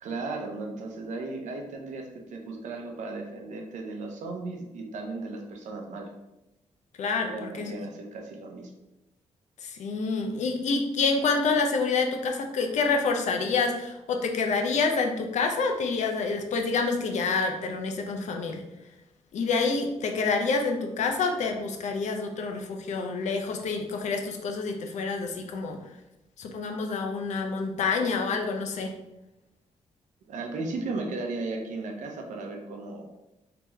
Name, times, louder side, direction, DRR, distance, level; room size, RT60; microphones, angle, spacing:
voice 1, 0.0-6.1 7.3-8.7 30.3-33.1, right 3 dB, 80° right, 2 dB, 0.7 m, -36 dB
voice 2, 7.0-7.7 9.6-18.6 19.3-25.8 26.4-28.9, left 4 dB, 70° left, 3 dB, 0.6 m, -27 dB
3.5 x 2.9 x 3.1 m, 0.94 s
cardioid pair, 95°, 12 cm